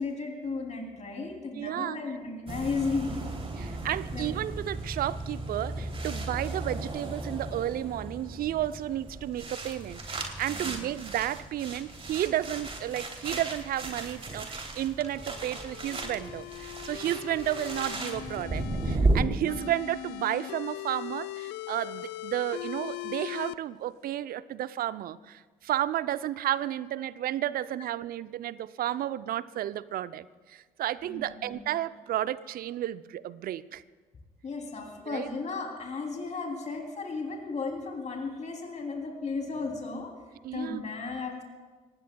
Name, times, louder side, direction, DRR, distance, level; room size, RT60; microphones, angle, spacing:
voice 1, 0.0-3.2 4.1-4.3 10.5-10.8 19.3-19.6 31.0-31.6 34.4-40.1 40.5-41.4, left 4 dB, 40° left, 1 dB, 3.2 m, -35 dB
voice 2, 1.5-2.0 3.6-33.8 35.1-35.3 40.4-40.8, right 12 dB, 55° right, 16 dB, 0.6 m, -32 dB
sound 1, 2.5-19.2, right 2 dB, 30° right, 3.1 m, -35 dB
sound 2, 15.0-19.0 19.5-23.5, left 16 dB, 65° left, 0.5 m, -40 dB
25.0 x 19.5 x 2.3 m, 1.4 s
hypercardioid pair, 45°, 18 cm